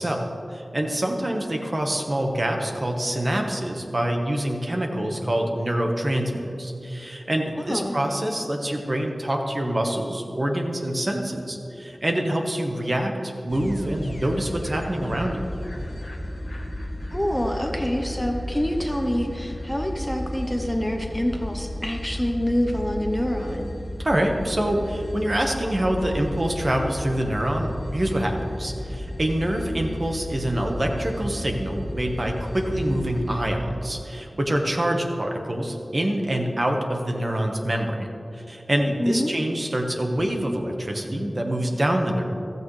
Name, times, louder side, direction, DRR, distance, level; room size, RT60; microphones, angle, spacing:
voice 1, 0.0-15.4 24.0-38.1 38.3-42.2, right 1 dB, 40° right, 2 dB, 1.3 m, -26 dB
voice 2, 7.6-8.0 17.1-23.7 38.8-39.3, equal, 10° left, 2 dB, 0.9 m, -26 dB
sound 1, 13.5-33.4, left 1 dB, 30° left, 1.2 m, -34 dB
15.0 x 13.5 x 3.3 m, 2.8 s
wide cardioid pair, 80°, 0 cm